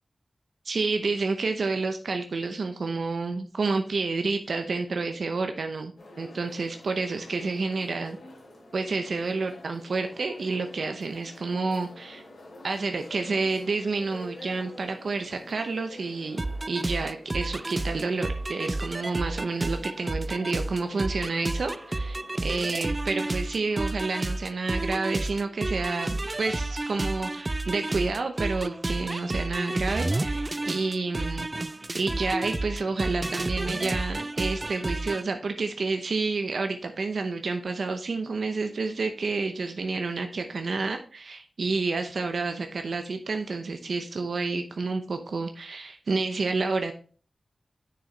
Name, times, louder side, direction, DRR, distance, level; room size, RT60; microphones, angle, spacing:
voice 1, 0.6-5.9 6.2-8.2 8.7-12.2 12.6-31.5 31.9-46.9, right 3 dB, 75° right, 6 dB, 0.7 m, -29 dB
sound 1, 6.0-22.9, left 1 dB, 85° left, 2.9 m, -48 dB
sound 2, 16.4-35.2, right 2 dB, 30° right, 0.3 m, -31 dB
6.8 x 6.4 x 3.3 m, 0.39 s
wide cardioid pair, 75°, 0 cm